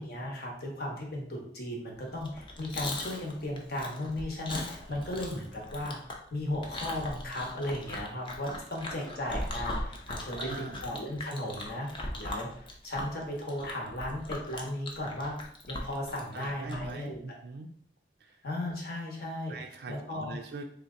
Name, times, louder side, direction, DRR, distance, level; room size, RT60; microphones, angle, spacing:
voice 1, 0.0-6.0 6.3-15.4 15.7-17.2 18.4-20.4, left 1 dB, 55° left, -1 dB, 1.0 m, -36 dB
Chewing mastication, 2.1-17.0, left 2 dB, 25° left, 0.5 m, -39 dB
voice 2, 10.3-10.8 16.3-17.7 18.2-18.4 19.5-20.6, right 3 dB, 55° right, 4 dB, 0.3 m, -42 dB
3.6 x 2.9 x 3.7 m, 0.66 s
head